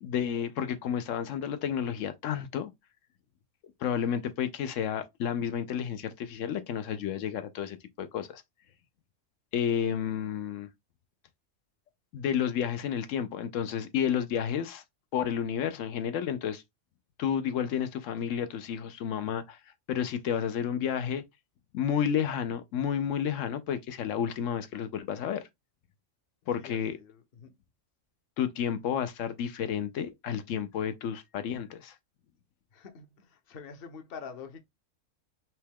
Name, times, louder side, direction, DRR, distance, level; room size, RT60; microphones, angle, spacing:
voice 1, 0.0-2.7 3.8-8.4 9.5-10.7 12.1-14.8 15.1-16.6 17.2-19.6 19.9-21.2 21.7-25.5 26.5-27.0 28.4-31.9, left 8 dB, 85° left, 1.0 m, -31 dB
voice 2, 26.6-27.5 32.7-34.6, left 6 dB, 55° left, 0.9 m, -46 dB
5.6 x 2.2 x 3.5 m
omnidirectional pair, 1.3 m